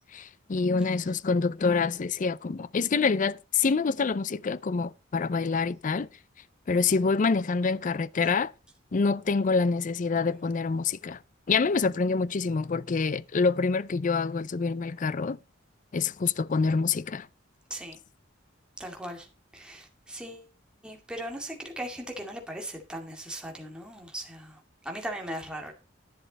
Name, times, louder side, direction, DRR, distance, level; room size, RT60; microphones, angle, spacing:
voice 1, 0.1-6.1 6.7-8.5 8.9-11.2 11.5-15.4 15.9-17.3, left 4 dB, 45° left, 0.5 m, -26 dB
voice 2, 18.8-19.3 19.5-20.5 20.8-25.7, right 1 dB, 5° right, 2.2 m, -38 dB
11.0 x 9.7 x 4.1 m
head